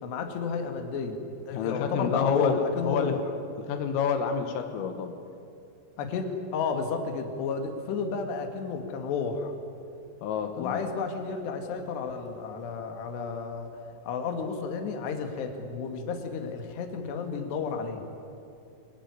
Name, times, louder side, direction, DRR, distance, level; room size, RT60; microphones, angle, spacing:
voice 1, 0.0-3.2 6.0-9.5 10.6-13.7 14.1-18.0, left 5 dB, 65° left, 5 dB, 4.0 m, -32 dB
voice 2, 1.5-3.1 3.7-5.2 10.2-10.9, left 6 dB, 90° left, 6 dB, 4.2 m, -28 dB
26.0 x 19.5 x 9.8 m, 2.7 s
omnidirectional pair, 5.7 m